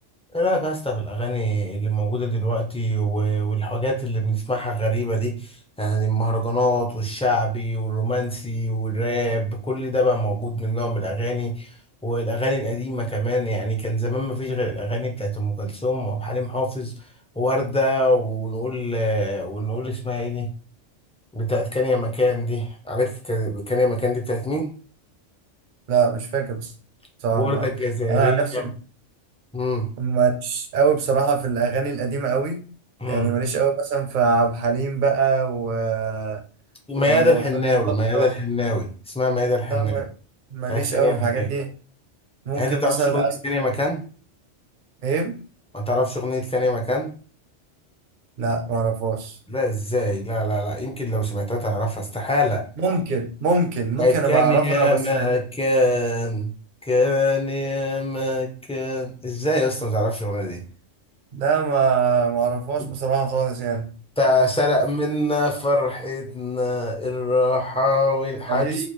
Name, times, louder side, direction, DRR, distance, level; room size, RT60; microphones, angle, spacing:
voice 1, 0.3-11.7 12.0-16.9 17.4-20.5 21.3-24.7 27.3-28.7 29.5-29.9 33.0-33.3 36.9-40.0 40.7-41.5 42.6-44.0 45.7-47.1 49.5-52.6 54.0-56.5 56.9-60.6 62.8-62.9 64.2-68.9, left 1 dB, 10° left, 0 dB, 0.4 m, -24 dB
voice 2, 25.9-26.7 27.2-27.7 28.1-28.7 30.0-32.6 33.1-36.4 37.0-37.4 38.1-38.3 39.7-40.1 40.5-41.7 42.5-43.3 45.0-45.3 48.4-49.4 52.8-55.3 61.3-63.9 68.5-68.9, right 5 dB, 50° right, 4 dB, 0.7 m, -23 dB
4.2 x 2.4 x 3.1 m, 0.38 s
omnidirectional pair, 1.3 m